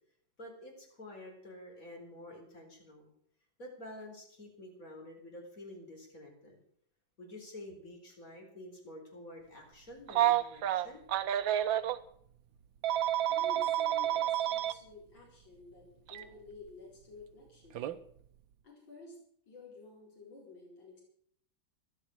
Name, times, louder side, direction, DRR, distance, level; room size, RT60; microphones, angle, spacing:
voice 1, 0.4-3.1 3.6-6.6 7.2-11.0, left 1 dB, 40° left, 1 dB, 4.7 m, -49 dB
Telephone, 10.1-12.0 12.8-14.7 16.1-16.2 17.8-18.0, right 12 dB, 75° right, 1.5 m, -29 dB
voice 2, 13.3-17.8 18.6-19.2 19.5-21.0, left 3 dB, 65° left, -3 dB, 5.5 m, -52 dB
14.5 x 12.0 x 6.4 m, 0.64 s
omnidirectional pair, 2.2 m